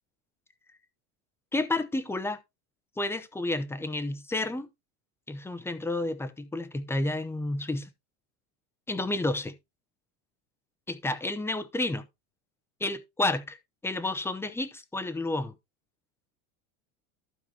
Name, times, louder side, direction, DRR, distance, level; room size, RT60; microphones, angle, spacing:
voice 1, 1.5-2.4 3.0-4.7 5.3-7.9 8.9-9.6 10.9-12.1 12.8-15.5, left 2 dB, 5° left, 0.7 m, -31 dB
14.5 x 5.0 x 2.8 m
supercardioid pair, 130°, 44 cm